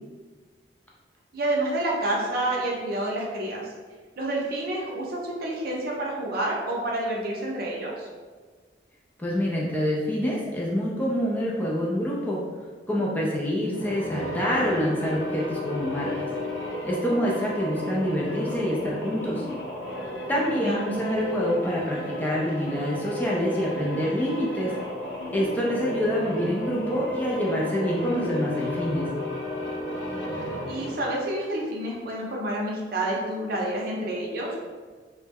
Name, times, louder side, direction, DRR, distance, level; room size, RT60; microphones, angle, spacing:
voice 1, 1.3-3.7 4.2-8.1 20.6-20.8 30.7-34.6, right 1 dB, 55° right, -3 dB, 0.6 m, -29 dB
voice 2, 9.2-12.4 12.9-16.3 16.8-19.4 20.3-24.7 25.3-29.1, equal, 10° left, -5 dB, 0.3 m, -26 dB
sound 1, 13.6-31.1, left 1 dB, 75° left, 0.5 m, -33 dB
2.2 x 2.0 x 3.4 m, 1.4 s
head